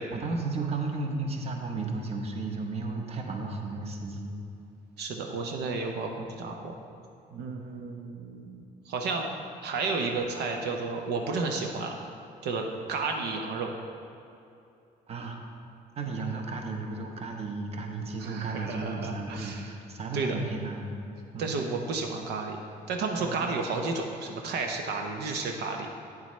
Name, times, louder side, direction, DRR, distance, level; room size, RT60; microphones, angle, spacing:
voice 1, 0.1-4.4 7.3-7.5 15.1-15.4 16.0-21.0 21.3-21.5 23.2-23.5, right 3 dB, 35° right, 2 dB, 0.9 m, -34 dB
voice 2, 5.0-6.7 7.4-9.3 9.6-12.0 12.4-13.7 18.2-19.7 20.1-20.4 21.4-22.6 22.9-25.9, right 4 dB, 75° right, 3 dB, 0.7 m, -32 dB
8.8 x 7.4 x 3.2 m, 2.7 s
cardioid pair, 110°, 17 cm